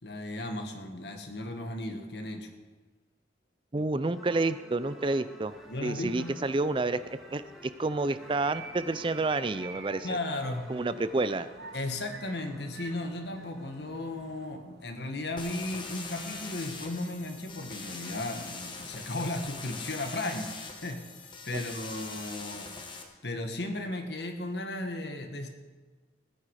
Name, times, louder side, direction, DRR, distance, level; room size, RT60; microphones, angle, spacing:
voice 1, 0.0-2.5 5.7-6.4 10.0-10.7 11.7-21.0 21.4-22.7 23.2-25.5, left 2 dB, 70° left, 5 dB, 1.8 m, -35 dB
voice 2, 3.7-5.5 5.8-7.0 7.3-7.4 7.8-10.2 10.7-11.5 21.5-21.6, right 3 dB, 30° right, 14 dB, 0.5 m, -29 dB
sound 1, 4.1-14.5, equal, ahead, 2.0 m, -52 dB
sound 2, 5.4-19.3, right 4 dB, 75° right, 1.5 m, -51 dB
sound 3, 15.4-23.0, left 4 dB, 30° left, 1.5 m, -42 dB
19.5 x 9.9 x 4.9 m, 1.3 s
head